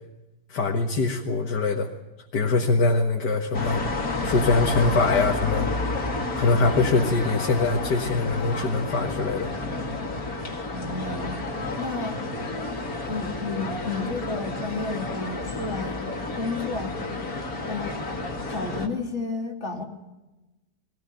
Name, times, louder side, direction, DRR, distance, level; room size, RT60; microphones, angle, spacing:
voice 1, 0.5-1.9 2.3-5.7 6.4-9.5, left 3 dB, 85° left, 1 dB, 2.2 m, -23 dB
sound 1, 3.5-18.9, left 2 dB, 60° left, 2.9 m, -30 dB
voice 2, 10.7-11.4 11.8-12.2 13.0-16.0 16.3-17.0 17.7-18.0 18.5-19.8, left 3 dB, 40° left, 2 dB, 3.1 m, -31 dB
21.0 x 18.5 x 9.0 m, 1.0 s
omnidirectional pair, 1.8 m